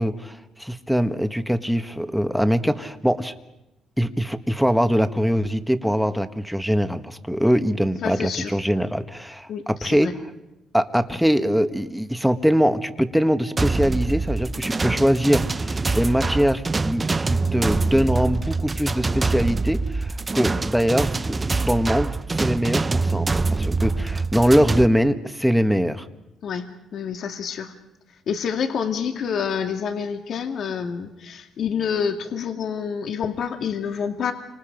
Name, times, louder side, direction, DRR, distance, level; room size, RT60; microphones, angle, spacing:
voice 1, 0.0-3.3 4.0-10.1 10.7-21.2 21.6-26.1, equal, ahead, 8 dB, 1.6 m, -22 dB
voice 2, 8.0-8.5 9.5-10.1 26.4-27.7 28.3-34.3, left 7 dB, 65° left, 5 dB, 2.1 m, -28 dB
sound 1, 13.6-24.9, right 3 dB, 25° right, 0.8 m, -24 dB
28.5 x 26.0 x 5.2 m, 0.94 s
cardioid pair, 90°, 0 cm